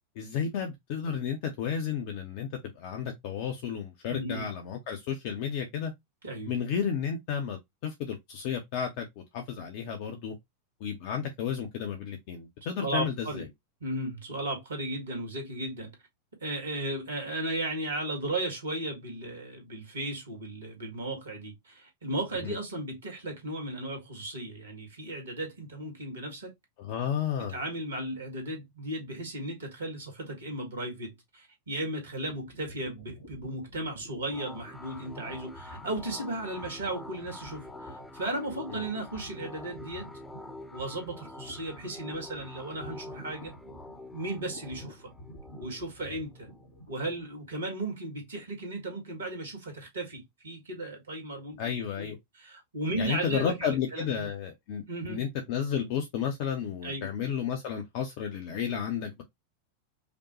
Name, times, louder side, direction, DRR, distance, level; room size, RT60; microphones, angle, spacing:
voice 1, 0.2-2.5 2.7-5.9 6.5-10.3 10.8-13.5 22.4-22.5 26.8-27.6 38.7-38.8 51.6-52.2 53.0-59.2, left 7 dB, 50° left, 0.7 m, -32 dB
voice 2, 4.1-4.5 6.2-6.5 12.6-13.4 13.8-15.9 16.4-26.5 27.4-40.1 40.7-43.5 44.1-45.1 45.6-46.5 46.9-51.6 52.0-54.3 54.9-55.2 56.8-57.1, right 1 dB, 70° right, 1.8 m, -35 dB
sound 1, 32.2-47.3, right 1 dB, 70° left, 1.3 m, -50 dB
sound 2, 34.3-47.5, left 2 dB, 5° left, 0.8 m, -47 dB
5.1 x 2.2 x 2.9 m
figure-of-eight pair, 90°, 0 cm